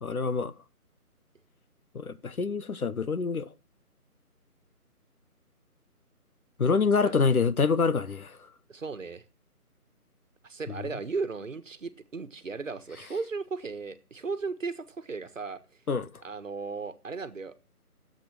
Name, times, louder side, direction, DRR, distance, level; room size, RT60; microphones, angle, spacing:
voice 1, 0.0-0.5 1.9-3.5 6.6-8.4 15.9-16.1, left 5 dB, 70° left, 1.2 m, -26 dB
voice 2, 8.7-9.2 10.4-15.6 16.2-17.6, right 4 dB, 55° right, 1.5 m, -36 dB
14.0 x 7.9 x 6.1 m
figure-of-eight pair, 170°, 45 cm